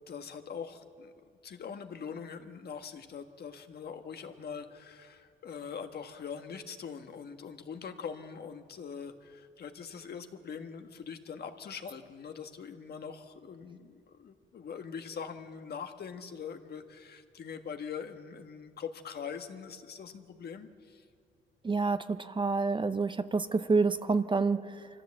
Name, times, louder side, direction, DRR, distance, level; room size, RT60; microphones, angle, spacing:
voice 1, 0.1-1.1 1.4-21.0, left 6 dB, 55° left, 6 dB, 1.5 m, -43 dB
voice 2, 21.6-24.9, right 4 dB, 25° right, 11 dB, 0.7 m, -28 dB
25.0 x 14.5 x 7.7 m, 2.3 s
cardioid pair, 90°, 20 cm